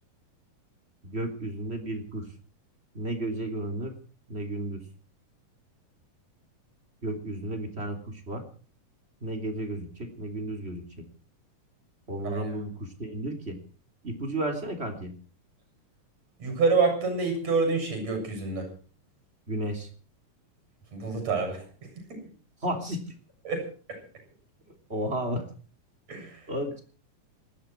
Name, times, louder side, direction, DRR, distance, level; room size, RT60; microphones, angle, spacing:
voice 1, 1.0-2.2 2.9-4.0 4.3-4.8 7.0-8.4 9.2-10.8 12.1-13.6 14.0-15.1 19.5-19.9 22.6-23.1 24.9-25.4 26.5-26.8, right 1 dB, 20° right, 4 dB, 3.1 m, -33 dB
voice 2, 16.4-18.7 20.9-21.6 22.0-22.3 23.4-23.6 23.9-24.0 26.1-26.4, right 4 dB, 50° right, 5 dB, 8.4 m, -27 dB
19.5 x 15.5 x 4.6 m, 0.40 s
omnidirectional pair, 3.8 m